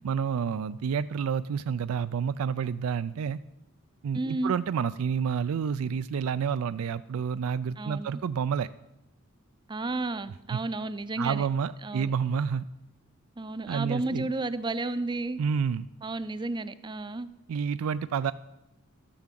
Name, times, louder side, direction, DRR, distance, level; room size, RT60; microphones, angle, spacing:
voice 1, 0.0-3.4 4.0-8.7 10.5-10.6 11.2-12.7 13.7-14.3 15.4-15.9 17.5-18.3, right 7 dB, 85° right, 13 dB, 0.4 m, -29 dB
voice 2, 4.1-4.5 7.8-8.1 9.7-11.5 11.8-12.1 13.4-15.4 16.0-17.3, right 2 dB, 20° right, 13 dB, 0.5 m, -32 dB
12.5 x 7.2 x 7.5 m, 0.90 s
head